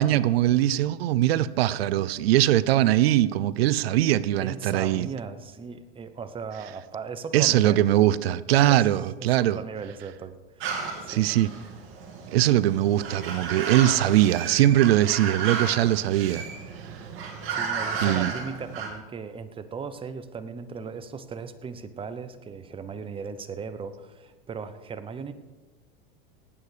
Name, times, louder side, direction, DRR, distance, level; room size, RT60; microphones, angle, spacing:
voice 1, 0.0-5.1 7.3-9.6 11.1-11.5 12.3-16.5 18.0-18.3, right 13 dB, 90° right, 0.5 m, -21 dB
voice 2, 4.4-7.8 8.7-8.9 9.2-10.7 11.0-11.4 17.5-25.3, right 5 dB, 20° right, 0.8 m, -37 dB
sound 1, 10.6-18.9, right 5 dB, 45° right, 2.9 m, -33 dB
18.0 x 8.7 x 5.0 m
supercardioid pair, 125°, 30 cm